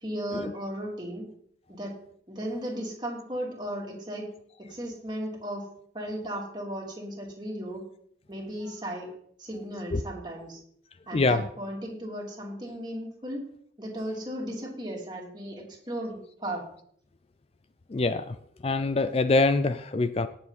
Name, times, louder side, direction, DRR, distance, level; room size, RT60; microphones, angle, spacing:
voice 1, 0.0-1.2 1.7-2.0 2.3-4.3 4.6-5.6 5.9-7.8 8.3-9.1 9.4-10.6 11.1-13.4 13.8-16.6, right 1 dB, 25° right, -1 dB, 3.0 m, -35 dB
voice 2, 11.1-11.4 17.9-18.4 18.6-20.3, left 3 dB, 35° left, 11 dB, 0.4 m, -24 dB
18.0 x 7.2 x 4.1 m, 0.65 s
head